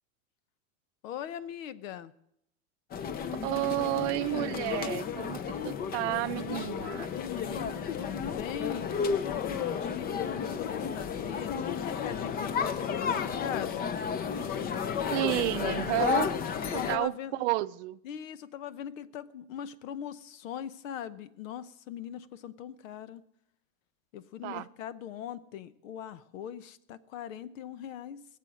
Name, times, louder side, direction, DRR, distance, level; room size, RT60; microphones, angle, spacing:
voice 1, 1.0-2.1 7.0-14.0 16.5-17.4 18.0-23.2 24.1-28.3, left 10 dB, 75° left, 16 dB, 1.0 m, -40 dB
sound 1, 2.9-17.0, left 7 dB, 25° left, 0.6 m, -32 dB
voice 2, 3.4-5.4 5.6-7.1 15.1-16.3 16.7-18.0 24.4-24.7, right 19 dB, 60° right, 15 dB, 0.7 m, -31 dB
21.0 x 7.6 x 6.3 m, 0.76 s
supercardioid pair, 140°, 39 cm